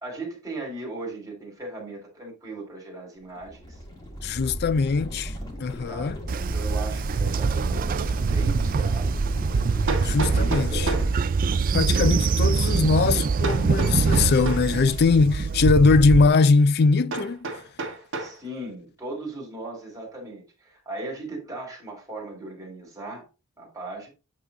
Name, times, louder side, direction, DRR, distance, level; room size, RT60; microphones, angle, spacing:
voice 1, 0.0-3.6 5.9-6.1 6.5-9.2 10.2-11.1 11.7-12.2 18.2-23.2 23.6-24.1, right 2 dB, 15° right, 3.0 m, -37 dB
sound 1, 3.4-11.1, equal, 15° left, 2.0 m, -34 dB
voice 2, 4.2-5.3 5.6-6.2 10.0-10.9 11.7-17.6, left 4 dB, 45° left, 0.4 m, -21 dB
Train, 6.3-16.3, right 4 dB, 40° right, 0.3 m, -24 dB
Hammer, 9.9-11.2 13.4-14.7 17.1-18.4, right 3 dB, 55° right, 1.6 m, -31 dB
8.5 x 3.9 x 3.8 m
head